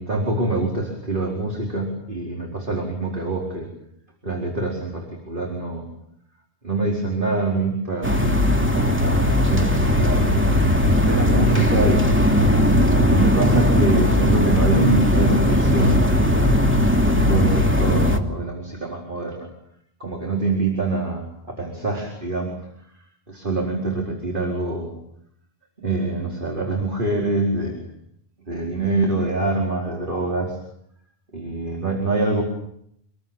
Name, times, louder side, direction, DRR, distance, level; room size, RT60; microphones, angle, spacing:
voice 1, 0.0-3.7 4.2-5.9 6.6-10.4 11.1-12.2 13.0-16.6 17.1-19.5 20.0-24.9 25.8-27.8 28.5-30.6 31.3-32.4, right 2 dB, 55° right, 1 dB, 4.8 m, -25 dB
sound 1, 8.0-18.2, left 1 dB, 10° right, 2.8 m, -18 dB
28.0 x 21.0 x 9.0 m, 0.73 s
omnidirectional pair, 1.1 m